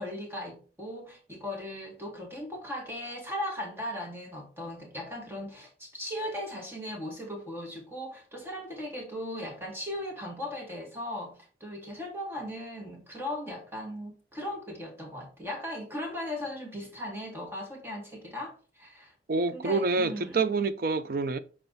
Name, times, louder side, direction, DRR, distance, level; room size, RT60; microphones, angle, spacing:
voice 1, 0.0-19.1 19.5-20.4, left 1 dB, 15° right, 1.8 m, -38 dB
voice 2, 19.3-21.4, right 4 dB, 50° right, 0.5 m, -27 dB
6.1 x 4.4 x 4.0 m
head